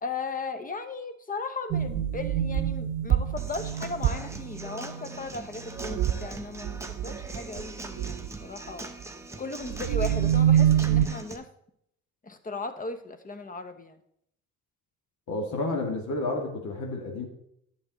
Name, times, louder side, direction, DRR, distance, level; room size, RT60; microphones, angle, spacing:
voice 1, 0.0-8.9 9.4-11.5 12.2-14.0, left 3 dB, 25° left, 10 dB, 1.0 m, -37 dB
sound 1, 1.7-5.2 5.7-6.3 6.7-7.6 8.0-8.3 9.7-11.1, right 10 dB, 75° right, 0.6 m, -26 dB
Human voice / Acoustic guitar / Drum, 3.4-11.4, right 2 dB, 10° right, 0.9 m, -42 dB
voice 2, 15.3-17.3, left 2 dB, 70° left, 1 dB, 1.9 m, -30 dB
8.9 x 6.9 x 4.0 m, 0.73 s
cardioid pair, 90°, 30 cm